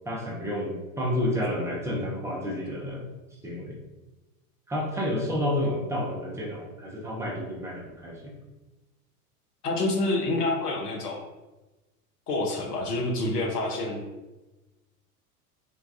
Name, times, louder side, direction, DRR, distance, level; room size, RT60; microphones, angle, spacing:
voice 1, 0.1-3.0 3.4-3.8 4.7-8.3, left 1 dB, 5° right, -3 dB, 0.5 m, -30 dB
voice 2, 9.6-11.2 12.3-14.1, left 2 dB, 85° left, 1 dB, 0.8 m, -27 dB
3.3 x 2.2 x 2.5 m, 1.1 s
hypercardioid pair, 95°, 46 cm